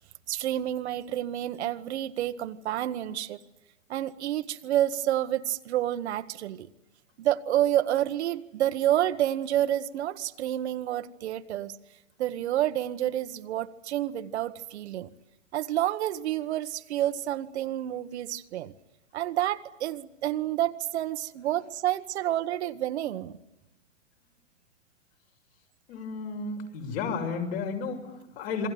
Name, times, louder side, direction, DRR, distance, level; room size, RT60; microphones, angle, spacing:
voice 1, 0.3-3.4 3.9-6.7 7.2-11.7 12.2-15.1 15.5-18.7 19.1-23.4, right 12 dB, 55° right, 1.4 m, -29 dB
voice 2, 25.9-28.7, left 5 dB, 50° left, 6.8 m, -33 dB
28.0 x 23.0 x 9.3 m
hypercardioid pair, 140°, 39 cm